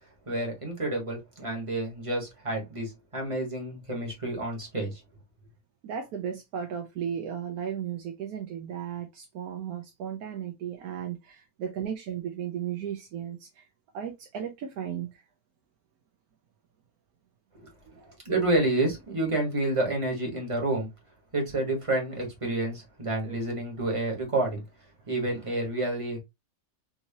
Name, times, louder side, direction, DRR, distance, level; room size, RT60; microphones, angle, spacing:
voice 1, 0.3-5.0 17.5-17.7 18.2-20.9 21.3-24.6 25.1-26.2, right 2 dB, 20° right, 1.4 m, -29 dB
voice 2, 5.8-13.7 13.9-15.2 17.9-18.1 23.3-23.4, right 8 dB, 90° right, 1.1 m, -35 dB
3.6 x 2.9 x 2.7 m
omnidirectional pair, 1.5 m